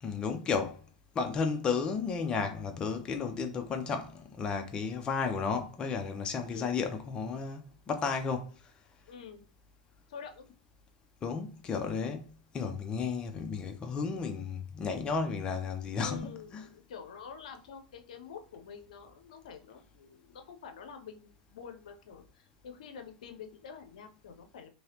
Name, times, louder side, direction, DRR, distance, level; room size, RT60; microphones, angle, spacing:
voice 1, 0.0-0.8 1.1-8.5 11.2-12.2 12.5-16.6, left 5 dB, 25° left, 0.5 m, -33 dB
voice 2, 6.4-6.9 9.1-9.4 10.1-10.5 16.0-24.7, left 6 dB, 75° left, 0.6 m, -47 dB
3.1 x 2.8 x 2.8 m
hypercardioid pair, 110°, 4 cm